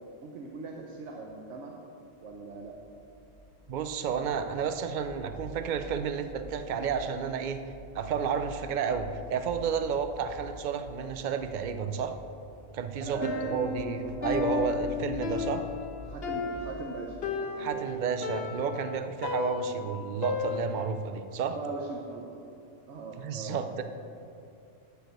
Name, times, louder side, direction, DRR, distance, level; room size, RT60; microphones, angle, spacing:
voice 1, 0.2-1.8 2.2-2.8 13.0-14.1 15.2-15.3 16.0-18.1 21.4-22.2 22.9-23.8, right 3 dB, 75° right, 0 dB, 1.2 m, -40 dB
sound 1, 2.2-17.0, left 1 dB, 10° left, 2.2 m, -48 dB
voice 2, 3.7-7.6 7.9-12.1 12.7-15.6 17.6-21.6 23.2-23.8, right 6 dB, 50° right, 8 dB, 0.7 m, -31 dB
Piano, 13.2-21.1, left 4 dB, 60° left, 1.3 m, -34 dB
11.5 x 4.7 x 7.8 m, 2.6 s
omnidirectional pair, 1.2 m